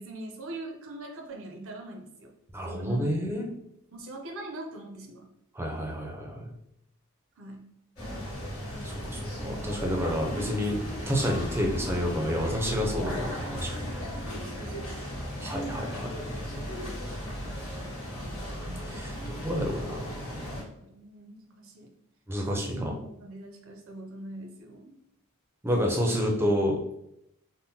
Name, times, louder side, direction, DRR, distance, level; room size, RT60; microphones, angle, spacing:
voice 1, 0.0-2.3 2.6-3.2 3.9-5.3 7.4-7.7 14.3-14.7 19.3-19.5 20.2-21.9 22.7-25.0, right 1 dB, 60° right, 3 dB, 0.5 m, -42 dB
voice 2, 2.5-3.5 5.5-6.5 8.8-10.8 11.1-13.9 15.4-16.3 18.9-20.6 22.3-22.9 25.6-27.0, equal, 10° right, 0 dB, 0.5 m, -29 dB
sound 1, 8.0-20.6, equal, 65° left, 1.3 m, -36 dB
3.6 x 2.1 x 2.7 m, 0.78 s
head